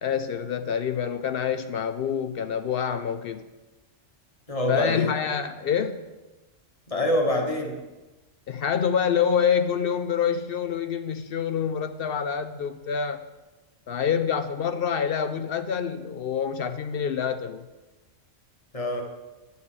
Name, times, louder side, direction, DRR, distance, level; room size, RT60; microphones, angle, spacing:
voice 1, 0.0-3.5 4.7-6.1 8.5-13.2 13.9-17.6, left 7 dB, 65° left, 0.6 m, -26 dB
voice 2, 4.5-5.1 6.9-7.8 18.7-19.0, left 1 dB, 30° left, 1.2 m, -25 dB
10.5 x 8.2 x 4.9 m
omnidirectional pair, 1.3 m